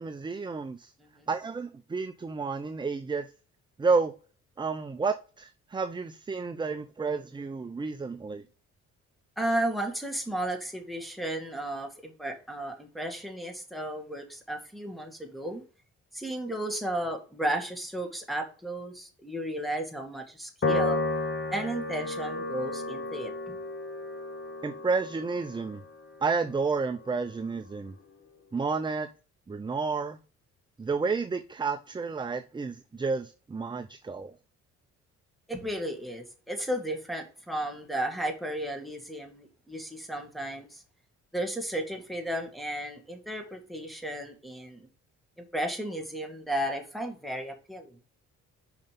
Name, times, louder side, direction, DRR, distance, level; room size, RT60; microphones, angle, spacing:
voice 1, 0.0-0.9 1.3-3.3 3.8-4.1 4.6-8.4 24.6-25.8 26.2-27.9 28.5-29.1 29.5-30.2 30.8-34.4, right 4 dB, 15° right, 0.5 m, -31 dB
voice 2, 9.4-15.6 16.1-21.0 21.5-23.6 35.5-40.8 41.3-44.9 45.4-48.0, right 1 dB, ahead, 2.0 m, -34 dB
Piano, 20.6-27.2, left 2 dB, 40° left, 1.4 m, -33 dB
5.8 x 5.3 x 5.2 m
cardioid pair, 90°, 30 cm